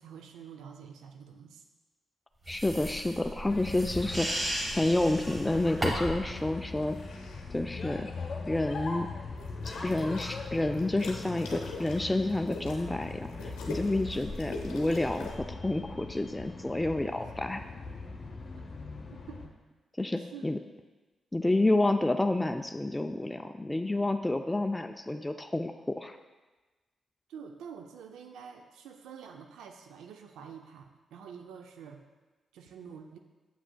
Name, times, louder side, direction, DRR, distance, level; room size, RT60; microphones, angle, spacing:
voice 1, 0.0-1.6 17.2-17.3 19.0-19.4 20.2-20.5 27.3-32.0 32.5-33.2, right 7 dB, 85° right, 4 dB, 0.4 m, -47 dB
voice 2, 2.5-4.4 4.8-7.0 7.5-8.1 8.5-9.1 9.6-17.6 20.0-20.6 21.3-26.2, left 2 dB, 15° left, 6 dB, 0.3 m, -29 dB
sound 1, 2.5-6.3, right 1 dB, 35° right, 1.3 m, -35 dB
sound 2, 3.4-19.5, left 3 dB, 55° left, 0.9 m, -41 dB
sound 3, 6.8-7.5 9.4-10.4 10.7-15.4, left 3 dB, 90° left, 0.7 m, -42 dB
7.8 x 6.1 x 2.2 m, 1.2 s
supercardioid pair, 45°, 0 cm